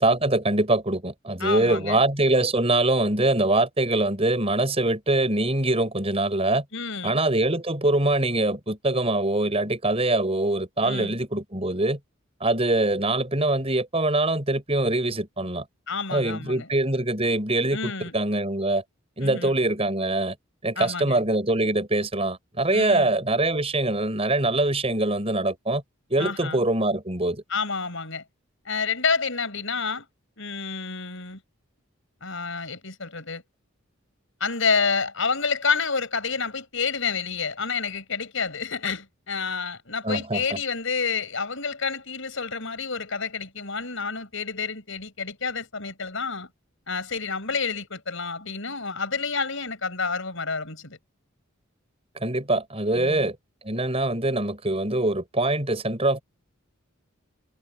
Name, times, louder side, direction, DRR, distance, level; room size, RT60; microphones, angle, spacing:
voice 1, 0.0-6.6 7.0-12.0 12.4-15.6 16.1-18.8 19.2-20.3 20.6-25.8 26.1-27.4 40.0-40.6 52.2-53.4 53.6-56.2, right 2 dB, 30° right, 6.9 m, -23 dB
voice 2, 1.4-2.0 6.7-7.2 10.8-11.2 15.9-16.7 17.7-18.1 19.2-19.6 20.8-21.2 22.7-23.1 26.2-26.6 27.5-28.2 28.7-30.1 30.4-31.4 32.2-33.4 34.4-46.5 46.9-51.0 52.9-53.3, left 5 dB, 70° left, 5.4 m, -29 dB
head